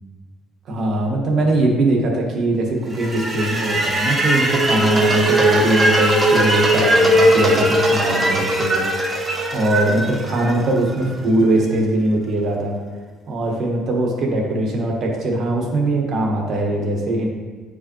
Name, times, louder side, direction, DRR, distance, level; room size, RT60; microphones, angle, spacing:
voice 1, 0.7-12.7 13.3-17.3, right 1 dB, 40° right, 1 dB, 1.2 m, -21 dB
sound 1, 2.9-11.0, right 1 dB, 15° right, 0.8 m, -19 dB
9.3 x 4.8 x 3.0 m, 1.4 s
cardioid pair, 165°, 0 cm